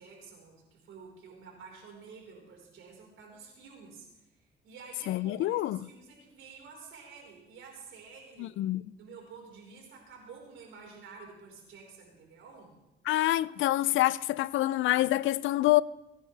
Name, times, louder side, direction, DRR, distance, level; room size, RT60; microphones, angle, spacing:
voice 1, 0.0-8.6 9.0-12.7, right 5 dB, 80° right, 4.6 m, -50 dB
voice 2, 5.1-5.8 8.4-8.8 13.1-15.8, left 16 dB, 80° left, 0.4 m, -26 dB
23.0 x 10.5 x 3.4 m
cardioid pair, 90°, 20 cm